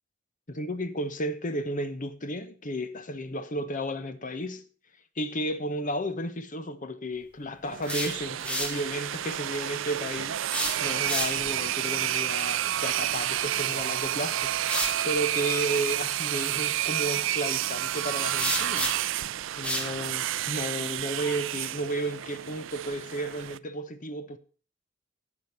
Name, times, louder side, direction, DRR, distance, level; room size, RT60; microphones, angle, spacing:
voice 1, 0.5-4.6 5.2-18.9 19.6-24.4, right 1 dB, 45° left, 1.1 m, -33 dB
sound 1, 7.6-8.8 10.4-11.6 13.7-13.8 14.6-15.0 18.4-19.2 19.6-19.9, equal, 5° left, 2.5 m, -31 dB
sound 2, 7.6-23.6, right 12 dB, 70° right, 0.4 m, -30 dB
15.5 x 5.2 x 6.6 m
head